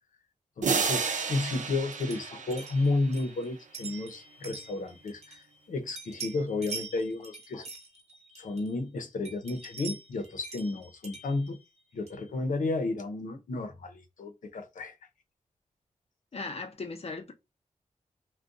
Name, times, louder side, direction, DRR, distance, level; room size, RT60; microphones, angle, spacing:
voice 1, 0.6-7.6 8.4-11.6 11.9-14.9, left 2 dB, 90° left, 0.7 m, -32 dB
sound 1, 0.6-3.3, right 5 dB, 70° right, 0.6 m, -31 dB
sound 2, 1.9-5.7 6.0-8.9 9.3-12.3, right 4 dB, 55° right, 0.9 m, -45 dB
voice 2, 16.3-17.3, left 3 dB, 50° left, 0.7 m, -38 dB
2.5 x 2.2 x 3.6 m
wide cardioid pair, 95°, 13 cm